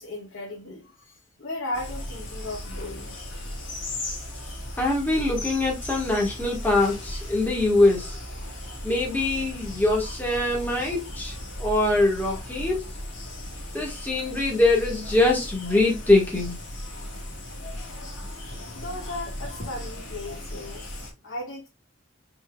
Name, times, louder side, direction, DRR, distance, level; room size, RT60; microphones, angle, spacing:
voice 1, 0.0-3.2 18.7-21.7, left 1 dB, 85° left, 1.4 m, -36 dB
sound 1, 1.7-21.1, left 1 dB, 65° left, 2.0 m, -36 dB
voice 2, 4.8-8.2 8.8-12.9 13.7-16.6, left 2 dB, 10° left, 1.3 m, -23 dB
5.4 x 4.3 x 2.3 m
head